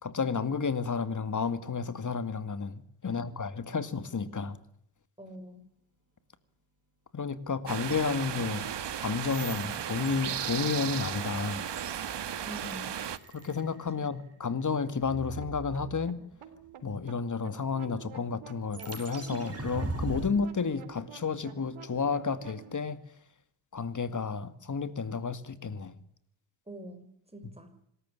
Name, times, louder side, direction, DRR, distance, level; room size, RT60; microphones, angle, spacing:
voice 1, 0.0-4.6 7.1-8.7 9.0-11.6 13.3-16.2 16.8-23.0 23.7-25.9, left 5 dB, 35° left, 2.2 m, -31 dB
voice 2, 5.2-5.6 12.4-12.9 14.0-14.1 26.7-27.7, right 1 dB, 10° right, 6.2 m, -45 dB
sound 1, 7.7-13.2, right 9 dB, 55° right, 1.7 m, -35 dB
sound 2, 9.3-14.3 18.7-20.3, right 2 dB, 30° right, 7.9 m, -41 dB
sound 3, 15.0-22.8, right 6 dB, 75° right, 3.6 m, -48 dB
26.0 x 14.0 x 9.9 m
cardioid pair, 80°, 49 cm